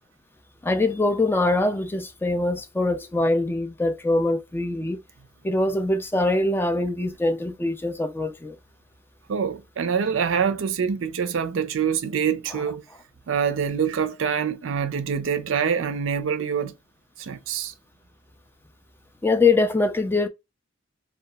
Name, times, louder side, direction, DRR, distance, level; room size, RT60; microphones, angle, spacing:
voice 1, 0.6-5.0 5.4-8.6 19.2-20.3, left 2 dB, 10° left, 0.3 m, -23 dB
voice 2, 9.3-12.8 13.3-16.7 17.2-17.7, right 7 dB, 70° right, 0.4 m, -25 dB
2.8 x 2.3 x 2.2 m
head